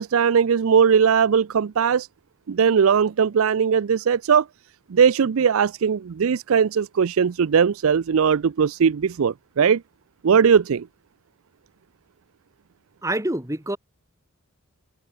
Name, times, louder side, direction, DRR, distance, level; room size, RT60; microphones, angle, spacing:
voice 1, 0.0-2.1 2.5-4.5 4.9-9.8 10.2-10.9, right 7 dB, 75° right, 0.4 m, -19 dB
voice 2, 13.0-13.8, right 1 dB, 15° right, 2.1 m, -26 dB
head